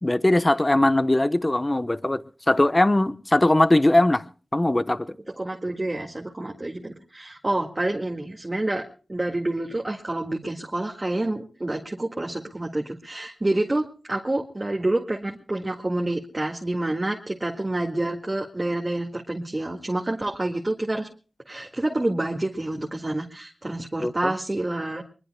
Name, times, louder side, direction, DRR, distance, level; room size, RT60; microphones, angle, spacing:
voice 1, 0.0-4.2 4.5-5.1 24.0-24.3, left 1 dB, 30° left, 0.9 m, -20 dB
voice 2, 5.4-21.1 21.5-25.0, right 2 dB, 30° right, 1.9 m, -28 dB
24.5 x 21.5 x 2.2 m
wide cardioid pair, 70°, 0 cm